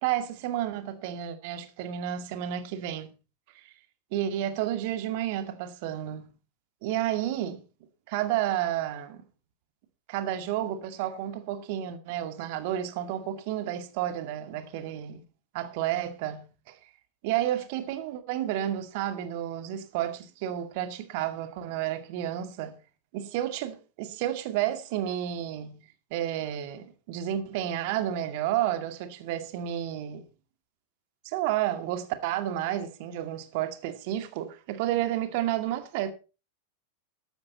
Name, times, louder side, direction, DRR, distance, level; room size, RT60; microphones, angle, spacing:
voice 1, 0.0-3.1 3.6-3.7 4.1-6.3 6.8-7.6 8.1-9.2 10.1-15.2 15.5-16.9 17.2-22.8 23.1-25.8 26.1-30.2 31.2-36.1, right 12 dB, 50° right, 2.2 m, -31 dB
14.0 x 12.0 x 4.2 m
figure-of-eight pair, 90°, 0 cm